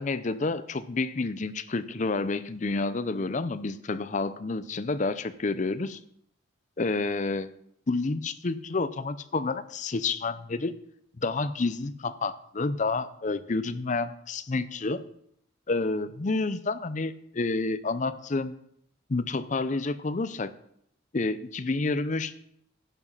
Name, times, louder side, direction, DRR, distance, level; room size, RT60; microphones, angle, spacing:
voice 1, 0.0-6.0 6.8-7.5 7.9-10.7 11.2-15.0 15.7-18.5 19.1-20.5 21.1-22.3, left 3 dB, 40° left, 14 dB, 0.5 m, -29 dB
11.0 x 7.3 x 5.6 m, 0.71 s
head